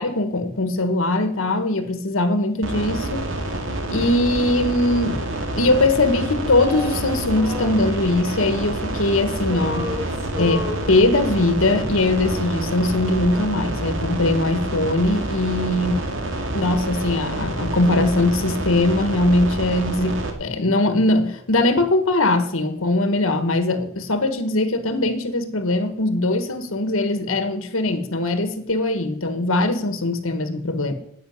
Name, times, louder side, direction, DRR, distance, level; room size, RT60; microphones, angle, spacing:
voice 1, 0.0-3.3 3.9-5.2 5.5-15.9 16.5-30.9, left 2 dB, 75° left, 1.5 m, -21 dB
sound 1, 2.6-20.3, right 1 dB, 65° right, 2.5 m, -28 dB
Male singing, 6.6-9.1 9.3-11.5, left 1 dB, 15° right, 2.6 m, -34 dB
10.5 x 8.7 x 9.5 m
head